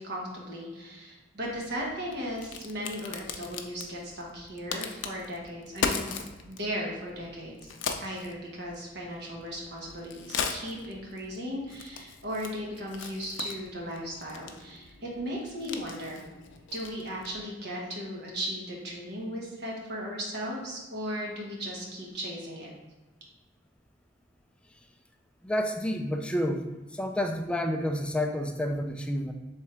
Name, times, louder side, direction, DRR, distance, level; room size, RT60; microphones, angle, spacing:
voice 1, 0.0-6.0 6.5-7.7 8.0-16.2 16.7-22.7, equal, 60° right, -2 dB, 1.1 m, -36 dB
Crack, 1.4-17.5, left 5 dB, 80° left, 0.5 m, -39 dB
voice 2, 25.4-26.7 26.9-29.3, equal, 5° left, 4 dB, 0.3 m, -29 dB
3.6 x 3.4 x 4.3 m, 1.1 s
head